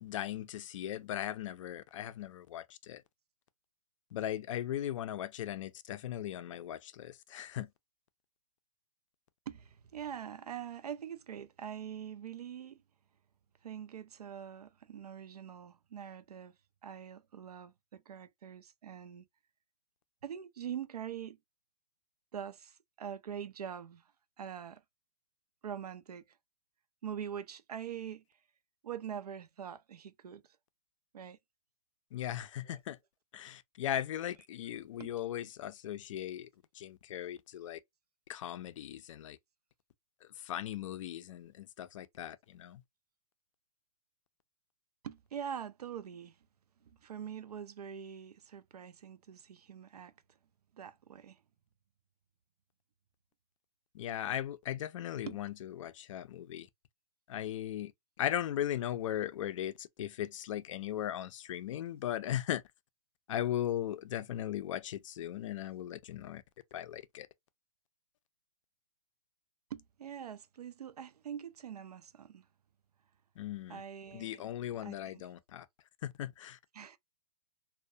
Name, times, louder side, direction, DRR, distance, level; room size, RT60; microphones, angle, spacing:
voice 1, 0.0-3.0 4.1-7.7 32.1-33.0 33.3-36.5 36.7-37.8 38.3-39.4 40.4-42.8 53.9-56.7 57.3-57.9 58.2-62.6 63.3-66.4 66.7-67.3 73.4-73.8 74.1-75.7 76.0-76.6, left 11 dB, 55° left, 0.4 m, -38 dB
voice 2, 9.5-12.8 13.6-16.5 16.8-19.2 20.2-21.4 22.3-24.1 24.4-24.8 25.6-26.4 27.0-28.2 28.8-30.4 31.1-31.4 32.6-32.8 35.0-35.1 45.0-46.4 46.8-50.1 50.7-51.4 55.3-55.4 69.7-72.5 73.7-74.4 74.8-75.2 76.7-77.0, right 8 dB, 85° right, 0.4 m, -44 dB
2.2 x 2.1 x 2.6 m
hypercardioid pair, 135°, 20 cm